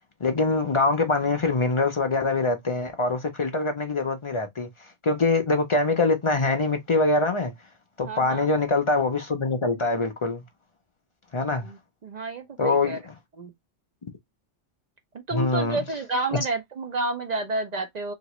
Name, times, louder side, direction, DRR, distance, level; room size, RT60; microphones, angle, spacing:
voice 1, 0.2-4.7 5.0-7.5 8.0-10.4 11.3-11.7 12.6-13.1 15.3-15.8, left 3 dB, 45° left, 0.4 m, -24 dB
voice 2, 8.0-8.5 11.6-13.0 13.4-13.5 15.1-18.1, right 2 dB, 60° right, 0.4 m, -30 dB
2.9 x 2.8 x 3.0 m
omnidirectional pair, 1.2 m